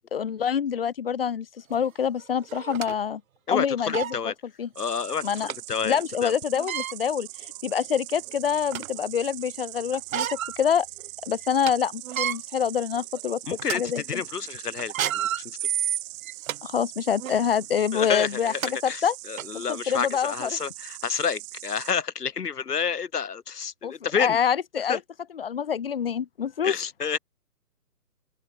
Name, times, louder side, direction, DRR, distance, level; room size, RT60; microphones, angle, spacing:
voice 1, 0.1-3.2 3.5-4.1 4.6-4.7 5.2-5.5 5.8-10.3 10.6-10.9 11.2-13.4 13.7-14.2 16.6-19.1 19.5-20.5 23.8-23.9 24.2-25.0 25.3-26.7, left 8 dB, 40° left, 0.5 m, -26 dB
sound 1, 1.7-1.8 2.5-2.9 3.5-3.6 3.9-4.2 5.5-5.6 6.5-6.9 7.7-7.8 8.3-9.0 9.9-10.6 11.0-11.1 11.4-11.7 12.0-12.4 13.0-13.2 13.6-13.8 14.8-16.6 17.2-17.4 18.2-18.3 18.6-18.7 19.4-19.5, right 10 dB, 60° right, 0.5 m, -30 dB
voice 2, 3.5-4.3 4.7-6.3 13.5-15.6 17.9-24.4 24.8-25.0 26.6-27.2, left 6 dB, 75° left, 1.3 m, -30 dB
Insect, 4.8-21.9, right 26 dB, 20° right, 1.3 m, -41 dB
open air
figure-of-eight pair, 140°, 47 cm